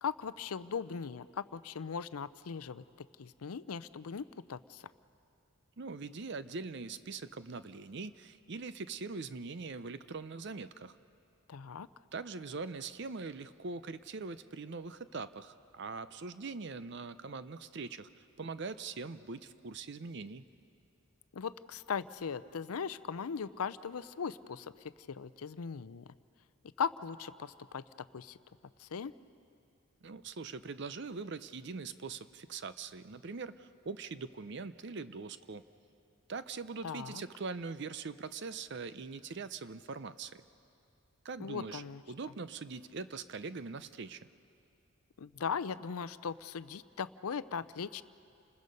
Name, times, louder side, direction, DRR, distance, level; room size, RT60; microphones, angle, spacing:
voice 1, 0.0-2.8 3.2-4.8 11.5-11.9 21.3-24.7 25.1-26.1 26.8-27.8 28.1-28.4 28.8-29.1 36.8-37.2 41.4-42.0 45.2-48.0, left 6 dB, 85° left, 16 dB, 0.5 m, -38 dB
voice 2, 5.8-10.9 12.1-18.1 18.4-20.4 30.0-35.6 36.3-40.4 41.2-41.8 42.1-44.2, right 4 dB, 50° right, 13 dB, 0.6 m, -42 dB
29.5 x 20.5 x 5.4 m, 2.5 s
head